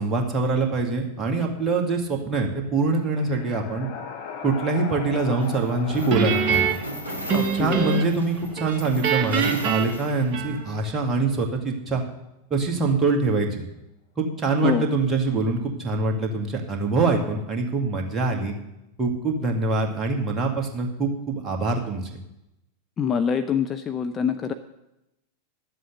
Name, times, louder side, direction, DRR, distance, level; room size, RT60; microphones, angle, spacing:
voice 1, 0.0-3.9 4.4-6.8 7.3-12.0 12.5-13.6 14.2-18.5 19.0-22.1, right 3 dB, 20° right, 1 dB, 2.1 m, -24 dB
sound 1, 2.7-10.5, left 7 dB, 50° left, 1.5 m, -40 dB
sound 2, 5.4-10.6, equal, 90° left, 1.6 m, -38 dB
Guitar, 6.1-8.3 8.6-10.9, right 7 dB, 40° right, 1.3 m, -25 dB
voice 2, 7.3-8.0 14.6-14.9 23.0-24.5, left 7 dB, 25° left, 8 dB, 0.6 m, -25 dB
11.5 x 7.7 x 6.8 m, 0.91 s
figure-of-eight pair, 90°, 0 cm